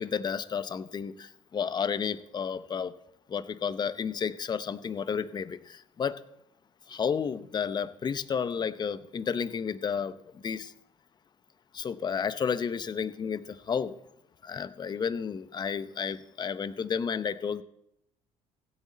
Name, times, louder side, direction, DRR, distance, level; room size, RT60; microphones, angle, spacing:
voice 1, 0.0-2.9 3.3-6.2 6.9-10.1 10.4-10.7 11.7-13.4 13.7-13.9 14.4-17.6, left 6 dB, 35° left, 14 dB, 0.7 m, -31 dB
16.0 x 8.3 x 4.1 m, 0.78 s
supercardioid pair, 95°, 13 cm